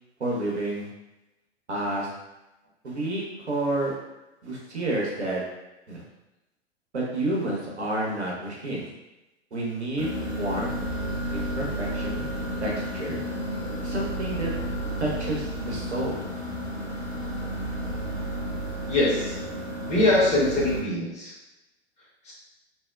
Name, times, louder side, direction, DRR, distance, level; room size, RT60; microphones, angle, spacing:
voice 1, 0.2-0.9 1.7-2.1 2.8-3.9 4.4-5.4 5.9-6.0 6.9-8.9 9.5-10.1 10.4-10.7 11.3-12.3 12.6-13.2 13.8-14.5 15.0-16.2, right 1 dB, 80° right, -3 dB, 0.8 m, -29 dB
sound 1, 10.0-20.8, equal, 25° right, 0.4 m, -32 dB
voice 2, 18.9-19.3 19.9-21.3 22.2-22.3, left 1 dB, 20° left, -6 dB, 0.9 m, -23 dB
2.9 x 2.1 x 2.3 m, 0.97 s
figure-of-eight pair, 95°, 33 cm